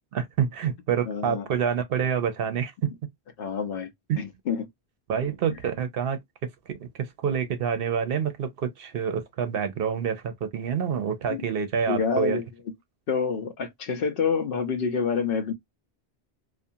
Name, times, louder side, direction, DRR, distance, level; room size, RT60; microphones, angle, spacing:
voice 1, 0.1-2.9 4.1-4.2 5.1-12.4, right 7 dB, 65° right, 0.7 m, -27 dB
voice 2, 1.1-1.5 3.4-3.9 4.2-4.7 11.3-11.5 11.9-12.4 13.1-15.5, left 6 dB, 60° left, 0.8 m, -27 dB
2.5 x 2.4 x 2.6 m
omnidirectional pair, 1.1 m